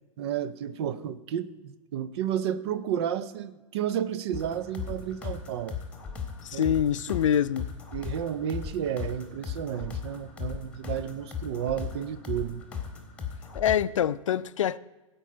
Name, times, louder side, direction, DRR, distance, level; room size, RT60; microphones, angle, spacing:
voice 1, 0.2-5.8 6.5-6.7 7.9-12.6, right 9 dB, 50° right, 0.7 m, -32 dB
sound 1, 4.3-13.8, left 6 dB, 5° left, 1.9 m, -37 dB
voice 2, 6.4-7.7 13.5-14.8, left 9 dB, 70° left, 0.4 m, -25 dB
15.5 x 5.4 x 5.5 m
figure-of-eight pair, 105°, 17 cm